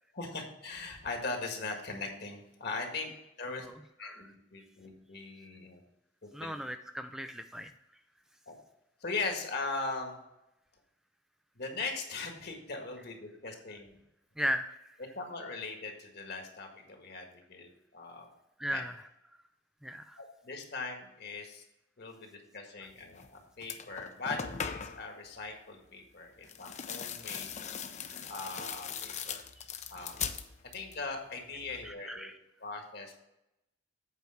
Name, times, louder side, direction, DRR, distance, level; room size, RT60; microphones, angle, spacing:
voice 1, 0.1-3.1 3.4-3.7 4.0-4.2 4.5-5.8 6.2-6.5 8.5-8.6 9.0-10.2 11.6-14.0 15.1-18.3 18.7-18.8 20.2-21.6 22.0-27.5 28.3-29.4 29.9-30.2 30.6-32.3 32.6-33.1, left 3 dB, 60° left, 3 dB, 1.7 m, -40 dB
voice 2, 6.3-7.7 14.4-14.8 18.6-19.0 19.8-20.2 29.2-29.6 31.8-32.4, equal, 5° right, 7 dB, 0.3 m, -37 dB
sound 1, 23.2-23.3 23.6-25.1 26.4-31.0 31.3-31.9, left 7 dB, 40° left, 0.6 m, -40 dB
8.3 x 4.6 x 6.4 m, 0.87 s
head